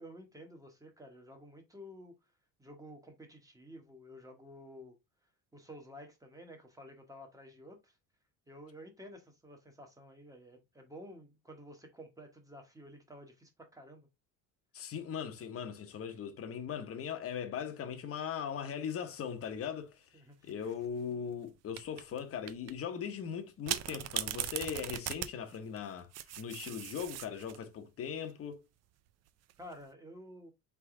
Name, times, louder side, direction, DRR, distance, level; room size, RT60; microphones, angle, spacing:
voice 1, 0.0-2.1 2.6-5.0 5.5-8.0 8.5-14.1 16.1-16.2 20.1-20.5 29.6-30.5, equal, 10° right, 1.1 m, -51 dB
voice 2, 14.7-20.0 20.4-26.1 26.4-28.6, left 7 dB, 40° left, 0.9 m, -39 dB
sound 1, 20.5-20.9 21.8-22.2 22.5-22.7 23.7-27.6 29.3-29.7, right 12 dB, 45° right, 0.4 m, -39 dB
3.8 x 3.5 x 3.7 m
cardioid pair, 135°, 37 cm